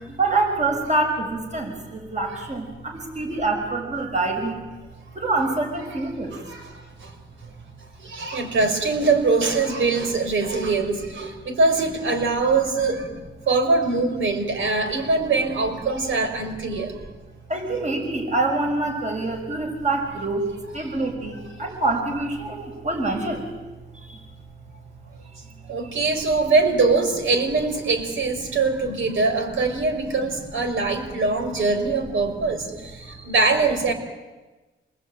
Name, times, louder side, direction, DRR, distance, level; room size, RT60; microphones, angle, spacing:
voice 1, 0.2-1.7 2.1-2.6 3.2-4.6 5.2-6.3 17.5-20.4 20.7-21.3 21.6-23.4, right 2 dB, 35° right, 3 dB, 6.6 m, -25 dB
voice 2, 5.8-7.2 8.0-13.1 13.4-16.9 20.8-20.9 21.3-21.4 25.7-33.9, right 3 dB, 75° right, 6 dB, 5.3 m, -23 dB
27.5 x 21.0 x 9.2 m, 1.2 s
cardioid pair, 75°, 20 cm